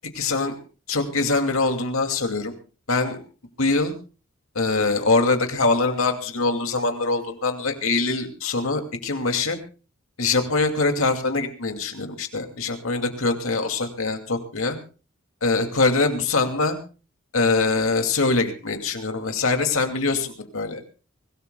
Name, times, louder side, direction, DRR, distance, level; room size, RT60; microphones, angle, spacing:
voice 1, 0.1-0.6 0.9-2.5 2.9-3.2 3.6-3.9 4.5-9.6 10.2-14.8 15.4-16.8 17.3-20.8, left 3 dB, 80° left, 5 dB, 2.4 m, -23 dB
24.5 x 17.5 x 2.3 m, 0.34 s
head